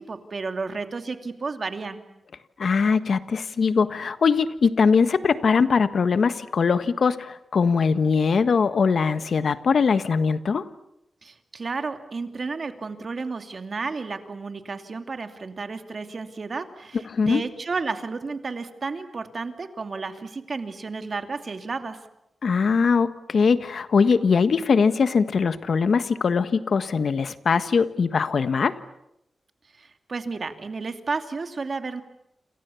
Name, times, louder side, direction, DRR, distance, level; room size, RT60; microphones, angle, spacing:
voice 1, 0.0-2.0 11.2-22.0 29.7-32.0, right 4 dB, 50° right, 7 dB, 2.6 m, -32 dB
voice 2, 2.6-10.7 17.1-17.4 22.4-28.8, left 5 dB, 65° left, 11 dB, 1.5 m, -21 dB
29.5 x 28.0 x 7.1 m, 0.82 s
wide cardioid pair, 100°, 0 cm